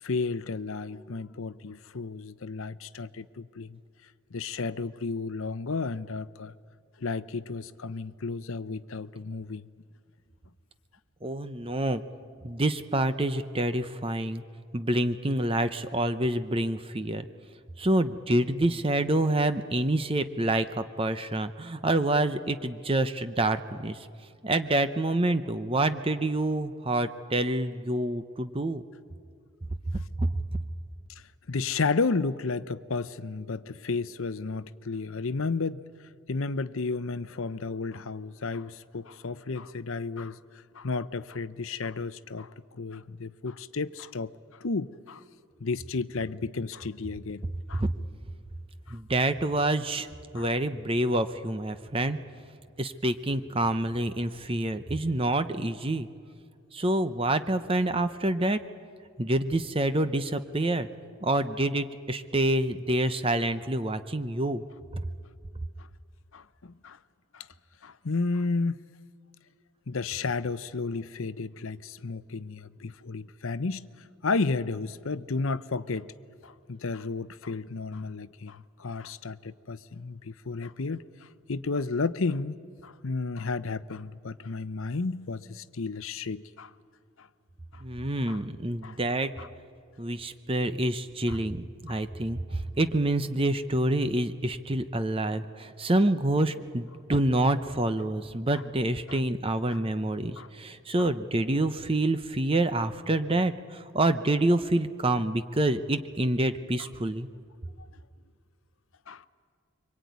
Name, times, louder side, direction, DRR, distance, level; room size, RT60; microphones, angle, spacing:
voice 1, 0.0-3.8 4.3-6.5 7.0-9.7 31.5-35.8 36.3-45.2 45.6-47.8 48.9-49.0 50.3-50.5 65.8-65.9 66.3-67.0 67.3-67.5 67.8-68.8 69.9-73.9 74.2-76.1 76.4-86.7 87.2-87.3 87.7-87.8 88.3-88.4 88.8-89.0 89.4-89.5 91.3-91.4 91.9-92.0 98.5-98.6 99.1-99.2 99.7-99.8 100.4-100.5 101.0-101.1 109.1-109.2, left 4 dB, 65° left, 0.7 m, -33 dB
voice 2, 11.2-12.0 12.4-14.4 14.7-17.2 17.8-24.0 24.4-28.8 30.2-30.3 47.7-47.9 48.9-50.1 50.3-52.2 52.8-56.1 56.7-58.6 59.2-60.9 61.2-64.6 64.9-65.0 87.8-89.3 90.0-107.3, right 1 dB, 25° right, 0.8 m, -27 dB
26.0 x 24.0 x 9.5 m
head